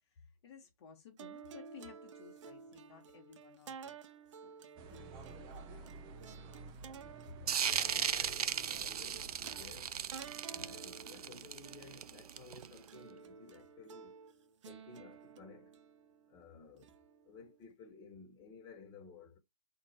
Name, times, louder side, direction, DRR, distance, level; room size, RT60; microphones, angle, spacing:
voice 1, 0.0-4.0 4.4-4.5 4.8-5.9 7.3-7.4 10.5-10.9, left 6 dB, 45° left, 1.3 m, -56 dB
sound 1, 1.2-17.6, right 6 dB, 50° right, 1.0 m, -53 dB
sound 2, 4.8-10.3, right 3 dB, 20° right, 0.7 m, -52 dB
sound 3, 7.5-12.8, right 8 dB, 80° right, 0.5 m, -36 dB
voice 2, 7.6-10.0 10.5-14.2 14.6-15.8 16.3-16.9 17.2-19.4, left 4 dB, 20° left, 1.5 m, -55 dB
4.3 x 2.8 x 4.3 m
hypercardioid pair, 140°, 19 cm